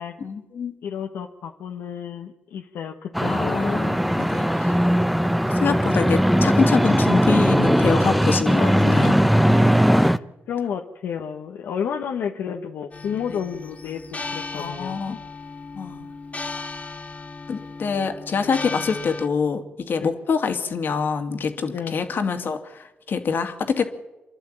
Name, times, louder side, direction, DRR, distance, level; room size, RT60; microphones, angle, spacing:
voice 1, 0.2-0.7 3.3-4.8 5.5-9.2 9.8-10.2 13.3-13.4 14.5-15.2 15.7-16.0 17.5-23.8, left 5 dB, 65° left, 7 dB, 2.5 m, -25 dB
voice 2, 0.8-3.8 10.0-15.1 20.0-20.1 21.7-21.9, left 7 dB, 85° left, 3 dB, 1.4 m, -31 dB
sound 1, 3.1-10.2, equal, ahead, 1.0 m, -19 dB
sound 2, 12.9-19.3, left 3 dB, 40° left, 1.8 m, -36 dB
28.5 x 11.5 x 8.9 m, 1.0 s
supercardioid pair, 50°, 4 cm